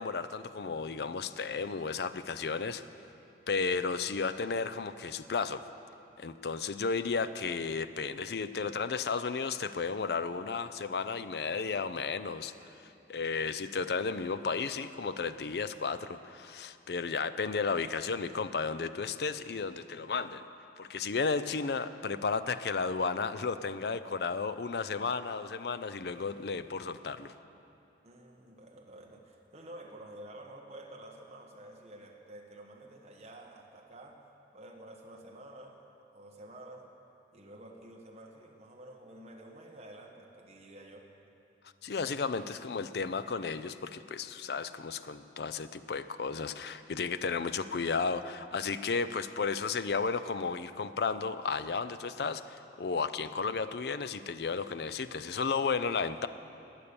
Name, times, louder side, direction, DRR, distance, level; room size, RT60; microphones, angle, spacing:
voice 1, 0.0-2.8 3.5-5.7 6.2-12.5 12.8-20.5 20.8-27.3 41.8-56.3, left 5 dB, 65° left, 12 dB, 0.5 m, -33 dB
voice 2, 28.0-34.2 34.5-35.8 36.1-36.9 37.3-41.1, right 1 dB, 35° right, -1 dB, 1.3 m, -50 dB
20.0 x 8.3 x 6.9 m, 2.7 s
head